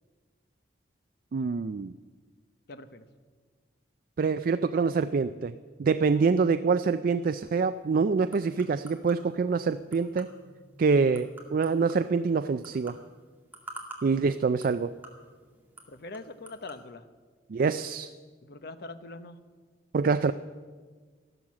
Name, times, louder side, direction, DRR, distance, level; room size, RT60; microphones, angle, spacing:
voice 1, 1.3-2.0 4.2-5.5 5.8-10.3 10.8-13.0 14.0-15.0 17.5-18.1 19.9-20.3, right 5 dB, 50° right, 12 dB, 0.4 m, -25 dB
voice 2, 2.7-3.0 15.9-17.1 18.4-19.4, left 2 dB, 60° left, 10 dB, 0.9 m, -43 dB
sound 1, 7.4-16.8, right 2 dB, 10° right, 2.1 m, -50 dB
14.0 x 12.0 x 7.3 m, 1.5 s
head